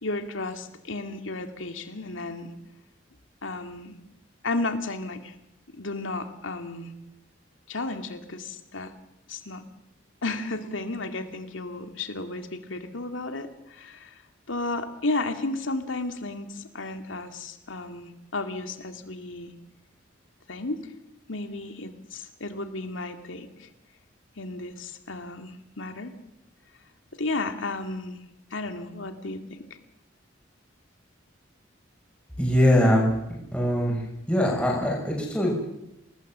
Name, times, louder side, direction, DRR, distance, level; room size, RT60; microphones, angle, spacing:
voice 1, 0.0-2.5 3.4-3.9 4.4-5.3 5.7-6.9 7.7-8.9 9.3-9.6 10.2-14.2 14.5-19.5 20.5-20.9 21.3-23.7 24.4-26.2 27.2-28.2 28.5-29.4, left 2 dB, 85° left, 7 dB, 2.3 m, -33 dB
voice 2, 32.4-33.1 33.5-35.5, left 1 dB, 5° left, -3 dB, 6.4 m, -22 dB
27.5 x 20.0 x 7.5 m, 0.88 s
head